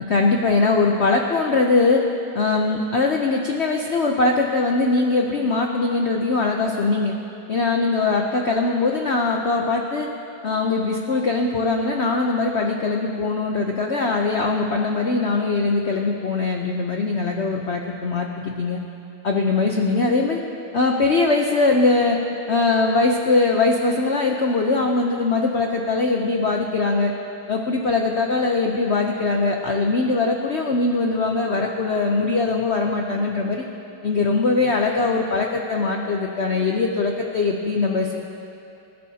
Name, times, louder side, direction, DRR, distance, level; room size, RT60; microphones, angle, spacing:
voice 1, 0.1-2.0 2.3-7.1 7.5-10.1 10.4-18.8 19.2-20.4 20.7-22.2 22.5-27.1 27.5-33.6 34.0-38.2, left 3 dB, 85° left, 1 dB, 0.6 m, -21 dB
26.5 x 12.0 x 2.8 m, 2.8 s
omnidirectional pair, 2.3 m